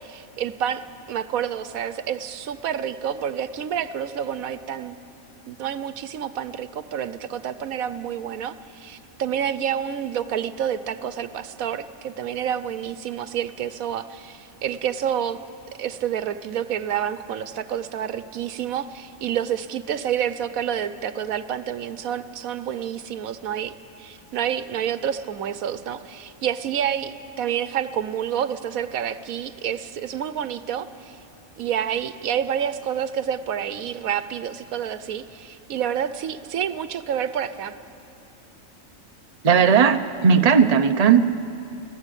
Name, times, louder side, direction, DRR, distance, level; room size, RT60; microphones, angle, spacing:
voice 1, 0.0-5.0 5.5-15.4 15.8-23.7 24.0-31.2 31.6-37.7, right 9 dB, 85° right, 13 dB, 1.3 m, -28 dB
voice 2, 39.4-41.2, right 6 dB, 35° right, 8 dB, 0.8 m, -16 dB
29.5 x 16.5 x 9.9 m, 2.8 s
omnidirectional pair, 1.4 m